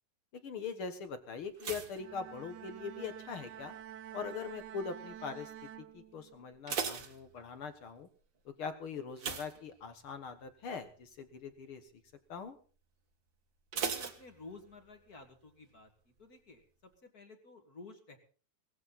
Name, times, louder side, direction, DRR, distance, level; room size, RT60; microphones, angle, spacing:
voice 1, 0.3-3.7 4.1-5.5 5.8-8.1 8.4-11.8 12.3-12.6, left 5 dB, 55° left, 10 dB, 1.5 m, -42 dB
sound 1, 1.6-3.1 3.3-3.8 4.4-4.8 5.1-5.2 5.6-5.7 6.3-7.9 9.1-10.3 10.6-10.9 11.3-11.4 13.7-14.9 15.2-15.3, right 6 dB, 45° right, 1.8 m, -39 dB
Bowed string instrument, 1.9-6.5, right 10 dB, 70° right, 2.1 m, -49 dB
voice 2, 13.7-15.9 16.2-18.2, left 3 dB, 30° left, 6 dB, 2.1 m, -53 dB
19.0 x 15.5 x 4.1 m, 0.40 s
omnidirectional pair, 4.0 m